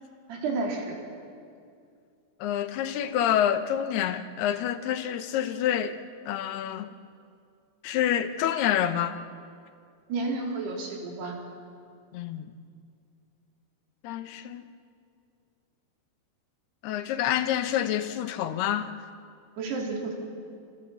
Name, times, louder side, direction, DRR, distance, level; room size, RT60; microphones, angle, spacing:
voice 1, 0.3-1.0 10.1-11.4 19.6-20.2, right 3 dB, 75° right, 0 dB, 5.6 m, -31 dB
voice 2, 2.4-6.0 6.3-6.9 7.8-9.2 12.1-12.5 14.0-14.7 16.8-18.9, left 10 dB, 80° left, 10 dB, 3.0 m, -27 dB
27.5 x 27.0 x 7.2 m, 2.4 s
omnidirectional pair, 4.7 m